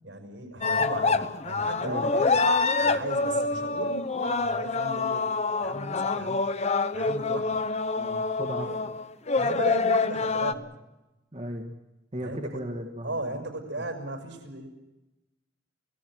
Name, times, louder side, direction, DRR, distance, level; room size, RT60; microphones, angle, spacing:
voice 1, 0.0-2.4 2.8-5.3 5.6-6.4 6.9-7.6 8.6-8.8 9.3-10.7 12.2-12.6 13.0-14.7, right 2 dB, 90° right, 5 dB, 6.1 m, -36 dB
sound 1, 0.6-10.5, left 3 dB, 35° left, 0.9 m, -26 dB
voice 2, 1.8-2.2 8.0-9.0 11.3-11.7 12.1-13.4 13.8-13.9, equal, 35° right, 3 dB, 1.8 m, -37 dB
29.0 x 18.0 x 6.3 m, 1.0 s
head